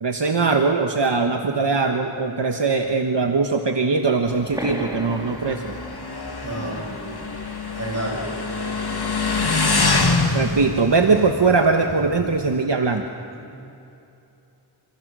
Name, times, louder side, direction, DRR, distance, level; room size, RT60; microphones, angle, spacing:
voice 1, 0.0-5.7 10.3-13.0, right 4 dB, 70° right, 4 dB, 1.4 m, -21 dB
Motorcycle, 4.3-12.6, left 3 dB, 55° left, 2.3 m, -26 dB
sound 1, 4.5-9.8, right 1 dB, 10° right, 3.3 m, -38 dB
voice 2, 6.4-7.3 7.7-8.4 13.3-13.7, right 1 dB, 35° right, -1 dB, 7.8 m, -31 dB
28.5 x 27.0 x 6.4 m, 2.8 s
wide cardioid pair, 65°, 45 cm